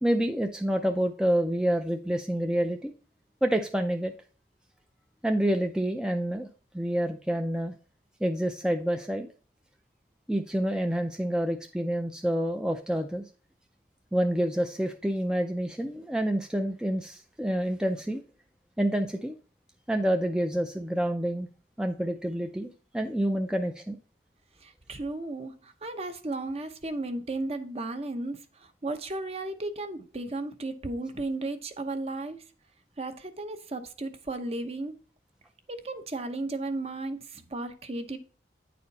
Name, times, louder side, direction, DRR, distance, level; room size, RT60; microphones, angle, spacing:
voice 1, 0.0-2.9 3.4-4.1 5.2-6.5 6.7-7.7 8.2-9.3 10.3-13.3 14.1-18.2 18.8-19.3 19.9-21.5 21.8-24.0, right 1 dB, 5° right, 0.4 m, -28 dB
voice 2, 24.6-32.4 33.0-34.9 35.7-38.2, right 2 dB, 35° right, 0.8 m, -34 dB
9.6 x 4.3 x 4.0 m
head